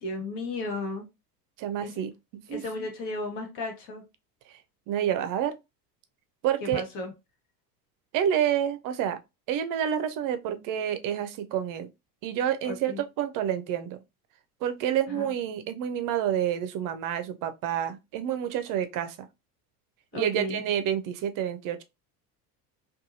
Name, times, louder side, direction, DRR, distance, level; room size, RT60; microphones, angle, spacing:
voice 1, 0.0-1.1 1.8-1.9 2.5-4.0 6.6-7.1 12.6-13.0 15.1-15.2 20.1-20.6, left 2 dB, 60° left, 1.3 m, -34 dB
voice 2, 1.6-2.1 2.5-2.6 4.9-5.6 6.4-6.8 8.1-9.2 9.5-11.9 12.2-14.0 14.6-19.2 20.1-21.8, right 10 dB, 45° right, 0.5 m, -28 dB
2.6 x 2.4 x 2.5 m
hypercardioid pair, 90°, 48 cm